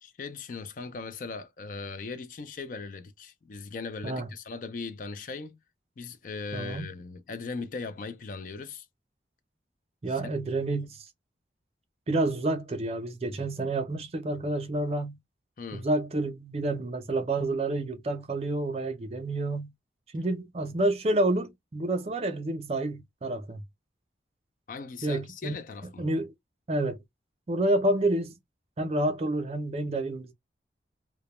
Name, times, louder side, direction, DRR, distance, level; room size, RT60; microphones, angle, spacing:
voice 1, 0.0-5.6 6.0-8.9 10.1-10.3 10.6-10.8 15.6-15.9 24.7-26.1, left 4 dB, 45° left, 0.4 m, -39 dB
voice 2, 6.5-6.9 10.0-11.0 12.1-15.2 15.7-19.7 20.1-23.6 25.0-25.5 26.0-26.3 26.7-27.0 27.5-28.3 28.8-30.3, right 2 dB, 35° right, 0.4 m, -29 dB
2.1 x 2.1 x 2.9 m
head